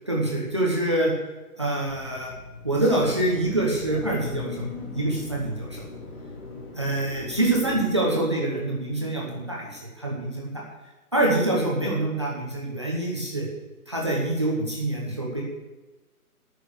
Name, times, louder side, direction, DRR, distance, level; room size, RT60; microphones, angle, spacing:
voice 1, 0.1-1.1 1.6-2.3 2.6-4.7 4.9-5.8 6.8-10.6 11.1-13.5 13.9-15.4, right 1 dB, 20° right, -3 dB, 0.9 m, -25 dB
sound 1, 1.8-7.9, left 2 dB, 35° left, 2.5 m, -39 dB
9.2 x 6.8 x 8.1 m, 1.1 s
hypercardioid pair, 175°, 45 cm